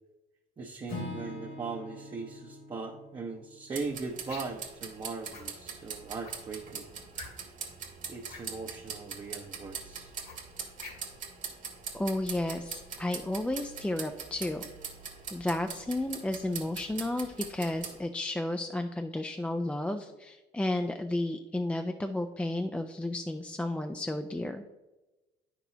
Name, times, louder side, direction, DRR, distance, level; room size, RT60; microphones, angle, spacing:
voice 1, 0.6-6.9 8.1-10.1, right 4 dB, 30° right, 0 dB, 0.7 m, -39 dB
Acoustic guitar / Strum, 0.9-4.9, left 2 dB, 90° left, 2.5 m, -44 dB
sound 1, 3.7-18.0, right 6 dB, 50° right, 1.4 m, -42 dB
sound 2, 4.2-4.6 5.3-5.5 6.2-6.5 7.1-7.6 8.2-8.5 10.2-11.2, left 4 dB, 60° left, 1.8 m, -46 dB
voice 2, 11.9-14.6 15.3-24.6, left 1 dB, 5° left, 5 dB, 0.3 m, -32 dB
8.8 x 6.0 x 2.8 m, 1.1 s
cardioid pair, 110°, 17 cm